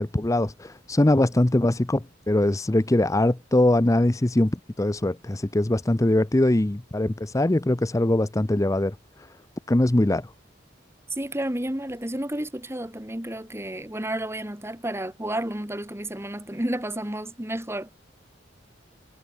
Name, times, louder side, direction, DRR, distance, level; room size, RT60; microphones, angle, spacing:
voice 1, 0.0-8.9 9.7-10.3, left 1 dB, 15° left, 0.6 m, -22 dB
voice 2, 11.1-17.9, right 1 dB, 15° right, 2.2 m, -31 dB
head